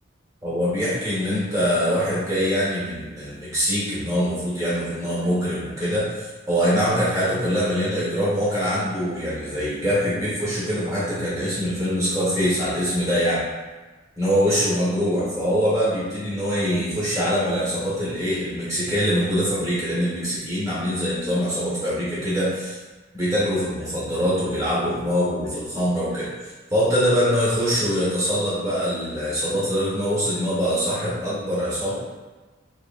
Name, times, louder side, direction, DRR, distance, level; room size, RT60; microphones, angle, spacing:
voice 1, 0.4-13.4 14.2-22.8 23.1-26.3 26.7-32.0, equal, 15° right, -9 dB, 1.3 m, -23 dB
3.9 x 3.0 x 2.5 m, 1.2 s
head